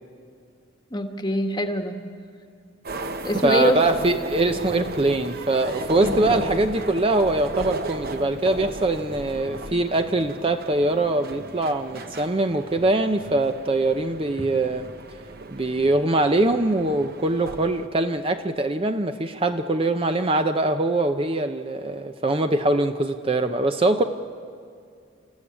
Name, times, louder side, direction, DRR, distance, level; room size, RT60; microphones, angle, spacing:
voice 1, 0.9-2.0 3.2-3.8 6.0-6.4, left 1 dB, 20° left, 5 dB, 1.3 m, -24 dB
sound 1, 2.8-17.9, right 2 dB, 50° right, 1.0 m, -35 dB
voice 2, 3.4-14.9 15.5-24.0, right 2 dB, 25° right, 7 dB, 0.6 m, -23 dB
29.0 x 14.0 x 8.6 m, 2.3 s
head